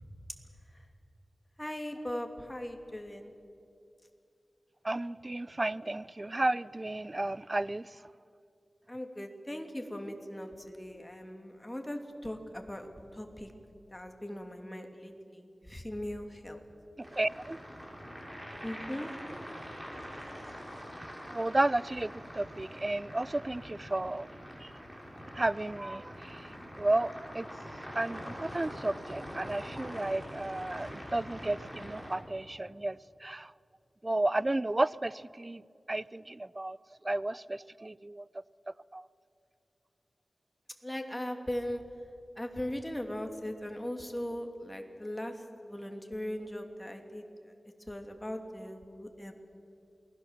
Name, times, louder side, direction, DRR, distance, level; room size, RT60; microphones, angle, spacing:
voice 1, 1.6-3.3 8.9-13.5 13.9-16.6 18.6-19.1 40.8-41.8 42.4-47.3 47.9-49.3, left 1 dB, 15° left, 4 dB, 2.8 m, -39 dB
voice 2, 4.8-7.8 17.0-17.6 21.3-24.3 24.6-24.7 25.3-26.5 26.8-27.5 27.9-33.0 33.2-33.5 34.0-35.6 35.9-36.8 37.0-38.2 38.9-39.0, right 2 dB, 30° right, 19 dB, 0.5 m, -32 dB
sound 1, 17.0-32.1, equal, 15° right, 6.2 m, -44 dB
28.0 x 20.0 x 7.5 m, 2.5 s
wide cardioid pair, 70°, 0 cm